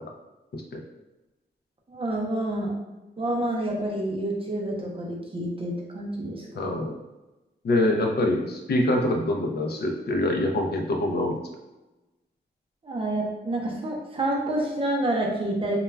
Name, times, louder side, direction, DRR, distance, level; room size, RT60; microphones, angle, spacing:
voice 1, 1.9-2.7 3.2-6.7 12.8-15.8, right 1 dB, 30° right, -1 dB, 0.5 m, -28 dB
voice 2, 6.6-7.0 7.6-11.4, left 1 dB, 60° left, 2 dB, 0.4 m, -25 dB
2.2 x 2.2 x 3.2 m, 1.0 s
wide cardioid pair, 150°, 18 cm